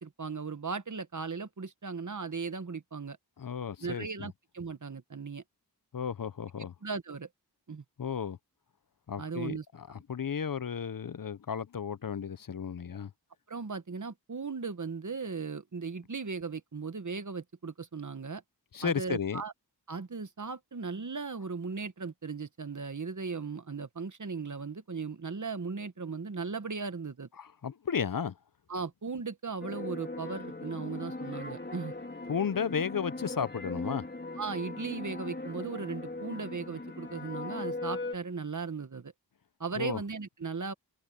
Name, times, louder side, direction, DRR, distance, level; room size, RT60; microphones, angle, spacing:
voice 1, 0.0-3.2 3.8-5.4 6.8-7.3 7.7-7.8 9.2-9.6 13.5-18.4 18.8-19.5 19.9-27.3 28.7-31.9 34.4-39.1 39.6-40.7, right 4 dB, 50° right, 1.2 m, -37 dB
voice 2, 3.4-4.3 5.9-6.7 8.0-8.4 9.1-13.1 18.7-19.4 27.4-28.4 32.3-34.0 39.7-40.0, left 7 dB, 60° left, 0.7 m, -34 dB
sound 1, 29.6-38.2, left 2 dB, 25° left, 2.9 m, -39 dB
wide cardioid pair, 55°, 39 cm